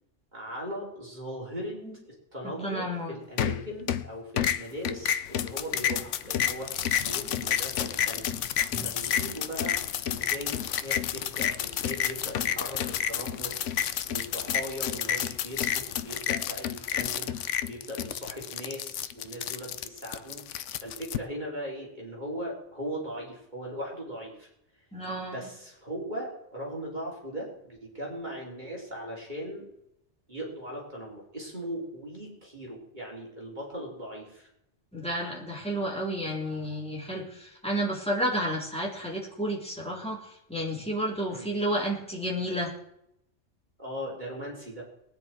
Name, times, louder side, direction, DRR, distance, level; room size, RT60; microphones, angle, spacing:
voice 1, 0.3-1.8 2.0-8.3 8.8-9.8 10.1-17.3 17.6-24.9 25.3-29.7 30.3-34.5 41.3-41.5 43.8-44.9, equal, 35° right, -4 dB, 4.2 m, -39 dB
voice 2, 2.6-3.1 8.7-8.9 24.9-25.5 34.9-40.2 40.5-42.7, equal, 5° left, -4 dB, 3.7 m, -31 dB
sound 1, 3.4-4.1 4.4-21.2, left 10 dB, 80° left, 1.0 m, -30 dB
20.5 x 9.9 x 4.6 m, 0.79 s
omnidirectional pair, 1.3 m